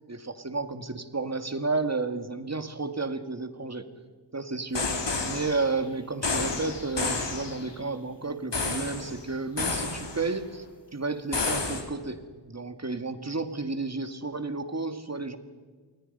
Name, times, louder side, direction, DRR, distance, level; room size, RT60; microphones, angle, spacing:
voice 1, 0.1-3.9 4.3-10.7 10.9-15.4, right 3 dB, 35° right, 9 dB, 2.1 m, -32 dB
sound 1, 4.7-5.7 6.2-7.7 8.5-9.2 9.6-10.3 11.3-11.8, left 3 dB, 60° left, 3.9 m, -30 dB
28.0 x 23.0 x 5.5 m, 1.5 s
wide cardioid pair, 65°, 48 cm